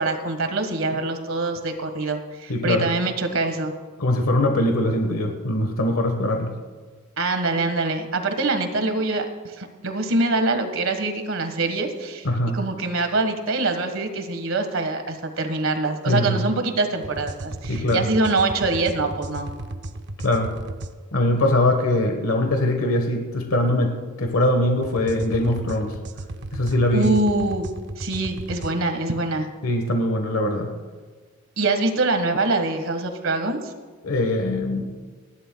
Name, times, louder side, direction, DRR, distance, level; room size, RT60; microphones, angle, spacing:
voice 1, 0.0-3.7 7.2-12.3 12.5-19.5 26.9-27.7 28.0-29.5 31.6-33.7, right 2 dB, 70° right, 7 dB, 1.5 m, -24 dB
voice 2, 2.5-2.9 4.0-6.5 12.2-12.6 16.0-16.4 17.7-18.1 20.2-20.5 21.1-25.9 26.5-27.1 29.6-30.7 34.0-35.0, left 1 dB, 85° left, 4 dB, 1.3 m, -22 dB
sound 1, 17.0-20.9 24.8-28.7, right 2 dB, 50° right, 0.7 m, -35 dB
29.5 x 11.5 x 2.3 m, 1.5 s
head